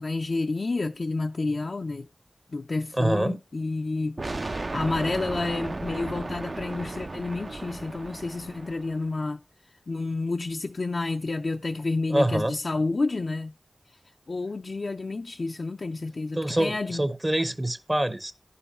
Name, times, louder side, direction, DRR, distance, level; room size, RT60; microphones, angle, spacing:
voice 1, 0.0-2.1 2.5-4.2 4.7-9.4 9.9-13.5 14.3-17.1, left 3 dB, 75° left, 0.4 m, -30 dB
voice 2, 3.0-3.4 12.1-12.6 16.4-18.3, right 1 dB, 25° right, 0.7 m, -25 dB
sound 1, 4.2-9.1, right 2 dB, 55° right, 0.5 m, -35 dB
10.5 x 5.7 x 4.2 m
wide cardioid pair, 45°, 0 cm